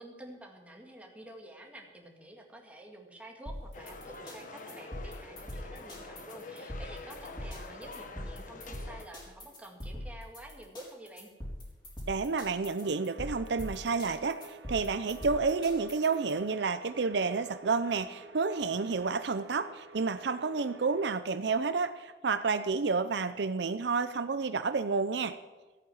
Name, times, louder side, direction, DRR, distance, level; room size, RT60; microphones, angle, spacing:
voice 1, 0.0-11.3, right 1 dB, 10° right, 1 dB, 2.0 m, -49 dB
sound 1, 3.5-16.3, left 1 dB, 25° left, 4.1 m, -43 dB
sound 2, 3.7-9.1, left 3 dB, 45° left, 1.4 m, -46 dB
voice 2, 12.1-25.3, right 4 dB, 65° right, 11 dB, 0.6 m, -30 dB
sound 3, 12.8-21.1, right 3 dB, 85° right, 0.9 m, -52 dB
14.5 x 8.7 x 7.9 m, 1.2 s
head